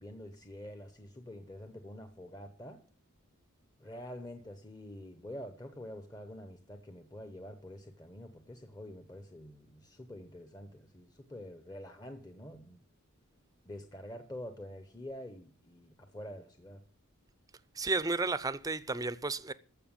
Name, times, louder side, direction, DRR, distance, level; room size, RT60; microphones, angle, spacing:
voice 1, 0.0-2.8 3.8-12.8 13.7-16.8, left 1 dB, 20° left, 0.8 m, -47 dB
voice 2, 17.7-19.5, right 3 dB, 15° right, 0.5 m, -32 dB
14.5 x 5.9 x 8.8 m
head